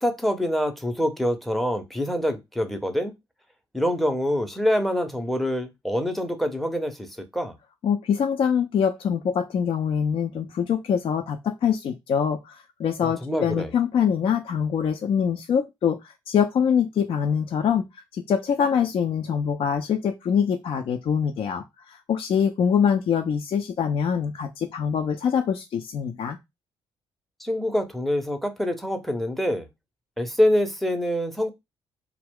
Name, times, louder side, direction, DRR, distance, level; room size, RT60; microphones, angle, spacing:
voice 1, 0.0-3.1 3.7-7.1 7.3-7.5 13.0-13.7 27.4-29.7 30.2-31.5, equal, ahead, 0.6 m, -25 dB
voice 2, 7.8-17.8 18.3-26.4, left 7 dB, 40° left, 0.4 m, -24 dB
2.3 x 2.0 x 3.5 m
figure-of-eight pair, 45°, 13 cm